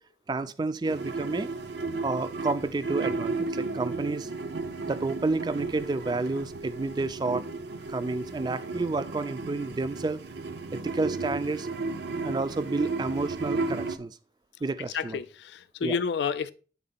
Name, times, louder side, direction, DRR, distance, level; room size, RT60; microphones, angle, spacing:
voice 1, 0.3-1.5 2.0-4.3 4.8-7.4 7.9-10.2 10.7-11.7 12.2-14.2 14.6-15.2 15.8-16.0, right 3 dB, 25° right, 0.3 m, -30 dB
sound 1, 0.8-14.0, right 3 dB, 75° right, 0.6 m, -34 dB
voice 2, 14.9-16.5, left 6 dB, 75° left, 0.4 m, -30 dB
8.5 x 3.6 x 4.0 m
head